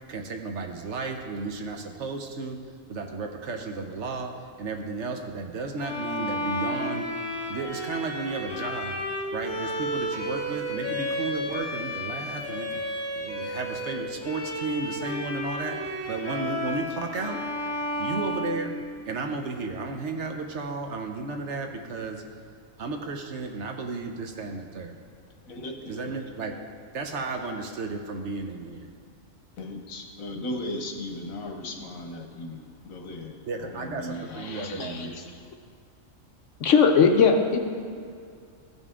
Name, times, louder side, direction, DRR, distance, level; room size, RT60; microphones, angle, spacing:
voice 1, 0.0-7.1 7.5-9.0 9.3-12.8 13.1-17.4 18.0-18.8 19.1-22.2 22.8-25.0 25.9-28.9 33.5-35.2, right 3 dB, 65° right, 4 dB, 1.0 m, -33 dB
Bowed string instrument, 5.8-19.2, equal, 20° left, 1.7 m, -32 dB
voice 2, 25.5-26.1 29.6-34.5 34.7-35.2, left 1 dB, 80° left, 3 dB, 1.3 m, -37 dB
voice 3, 34.5-35.1 36.6-37.6, left 5 dB, 65° left, 4 dB, 1.1 m, -20 dB
14.5 x 5.3 x 3.7 m, 2.3 s
omnidirectional pair, 1.4 m